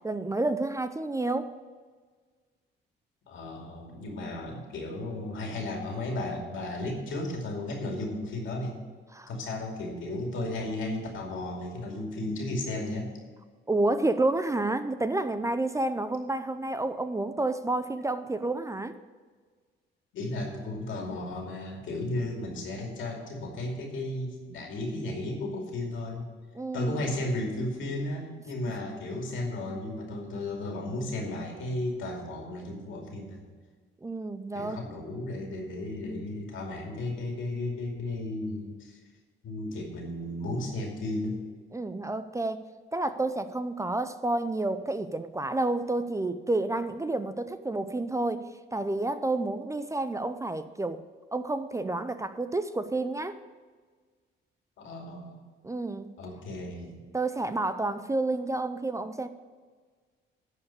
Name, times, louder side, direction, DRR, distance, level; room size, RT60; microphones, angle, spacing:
voice 1, 0.0-1.5 9.1-9.3 13.7-19.0 26.5-27.1 34.0-34.8 41.7-42.6 42.9-51.0 51.3-53.4 55.6-56.1 57.1-59.3, right 2 dB, 15° right, 11 dB, 0.5 m, -30 dB
voice 2, 3.3-8.7 9.3-13.1 20.1-26.3 26.7-33.5 34.5-39.0 39.4-41.4 54.8-55.4 56.2-57.0, left 1 dB, 75° left, 1 dB, 2.5 m, -34 dB
10.5 x 4.8 x 8.2 m, 1.5 s
cardioid pair, 90°, 20 cm